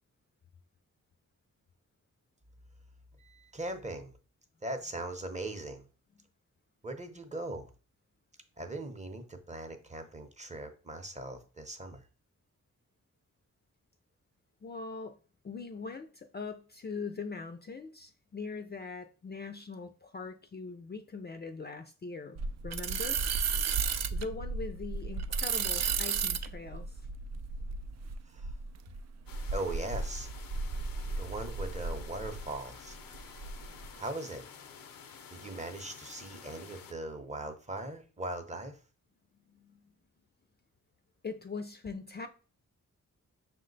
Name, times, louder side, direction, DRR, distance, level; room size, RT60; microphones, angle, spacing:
voice 1, 3.2-4.1 4.6-5.9 6.8-7.7 8.6-12.0 28.3-28.5 29.5-30.3 31.2-33.4 34.0-34.5 35.3-38.8, right 2 dB, 20° right, 0.7 m, -40 dB
voice 2, 14.6-15.2 15.4-23.2 24.1-27.0 39.5-39.9 41.2-42.3, left 4 dB, 30° left, 0.4 m, -41 dB
sound 1, 22.4-32.5 32.9-33.9, right 5 dB, 55° right, 0.4 m, -34 dB
sound 2, 29.3-36.9, left 7 dB, 90° left, 0.6 m, -51 dB
5.7 x 2.2 x 3.9 m
cardioid pair, 75°, 33 cm